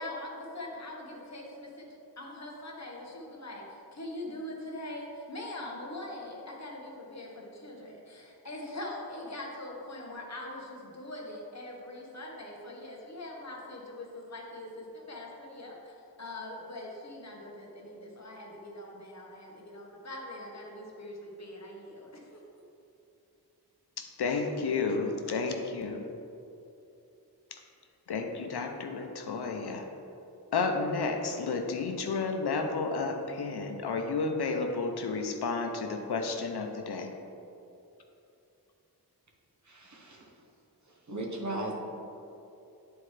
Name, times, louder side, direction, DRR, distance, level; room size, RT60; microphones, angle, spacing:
voice 1, 0.0-1.9 2.2-22.4, left 1 dB, 45° left, -2 dB, 1.2 m, -42 dB
voice 2, 24.0-26.1 27.5-27.6 28.1-29.9 30.5-37.1, left 4 dB, 75° left, 4 dB, 0.7 m, -32 dB
voice 3, 39.6-40.4 40.8-41.7, right 2 dB, 45° right, -1 dB, 1.1 m, -37 dB
9.8 x 4.3 x 3.3 m, 2.8 s
wide cardioid pair, 100°, 39 cm